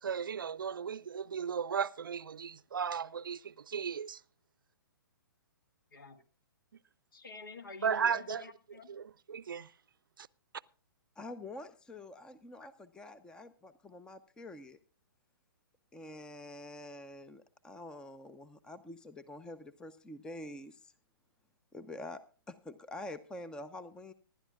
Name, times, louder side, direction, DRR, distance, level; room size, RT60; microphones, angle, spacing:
voice 1, 0.0-4.2 7.8-8.4 8.9-9.7 10.2-10.3, right 7 dB, 65° right, 0.6 m, -35 dB
voice 2, 5.9-6.2 7.1-8.9 12.6-12.7, left 4 dB, 60° left, 2.4 m, -48 dB
voice 3, 11.2-14.8 15.9-20.9 21.7-22.2 22.5-24.1, left 2 dB, 5° left, 0.7 m, -47 dB
25.0 x 11.5 x 2.3 m
figure-of-eight pair, 120°, 12 cm